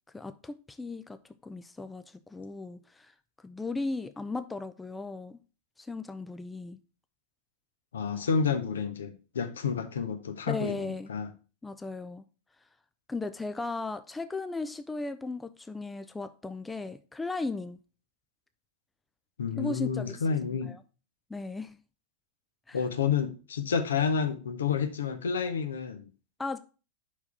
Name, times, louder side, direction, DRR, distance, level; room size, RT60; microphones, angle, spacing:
voice 1, 0.1-3.1 3.4-5.4 5.8-6.8 8.1-8.3 10.5-11.1 11.6-12.2 13.1-17.8 19.5-20.2 20.7-20.8 21.3-21.8 22.7-22.8 26.4-26.6, left 3 dB, 10° left, 0.4 m, -36 dB
voice 2, 7.9-11.3 19.4-20.7 22.7-26.1, left 6 dB, 65° left, 0.8 m, -30 dB
5.3 x 4.7 x 5.6 m
figure-of-eight pair, 90°, 0 cm